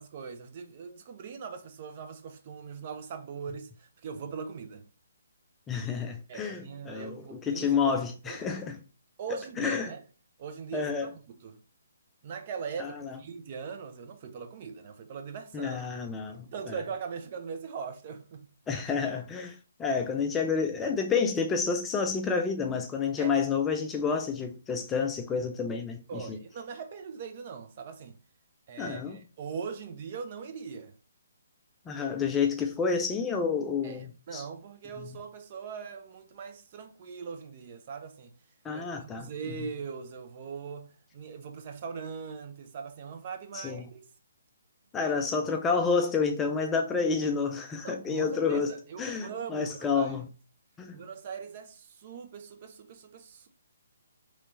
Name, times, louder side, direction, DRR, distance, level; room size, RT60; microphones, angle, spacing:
voice 1, 0.0-4.8 6.3-8.0 8.3-8.6 9.2-10.0 10.4-11.6 12.2-15.9 16.5-18.5 23.2-23.4 26.1-28.2 28.7-31.0 33.8-38.3 38.7-44.0 45.1-45.2 47.8-50.2 50.9-53.5, right 6 dB, 35° right, 0.6 m, -41 dB
voice 2, 5.7-8.8 9.6-9.9 10.7-11.1 12.8-13.2 15.5-16.7 18.7-26.4 28.8-29.2 31.9-34.4 35.0-35.2 38.6-39.3 39.6-39.7 43.5-43.9 44.9-50.3 50.8-51.0, left 5 dB, 10° left, 0.4 m, -29 dB
3.1 x 3.0 x 4.0 m
figure-of-eight pair, 135°, 0 cm